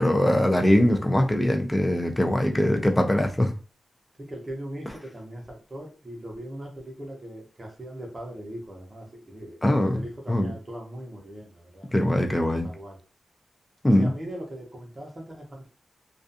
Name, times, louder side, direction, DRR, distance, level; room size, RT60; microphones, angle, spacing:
voice 1, 0.0-3.5 9.6-10.0 10.3-10.5 11.9-12.7 13.8-14.1, left 1 dB, 15° left, 0.4 m, -22 dB
voice 2, 4.2-9.6 9.9-11.9 12.6-13.0 14.0-15.7, right 1 dB, 25° right, 0.7 m, -39 dB
2.4 x 2.3 x 2.6 m
wide cardioid pair, 140°, 0 cm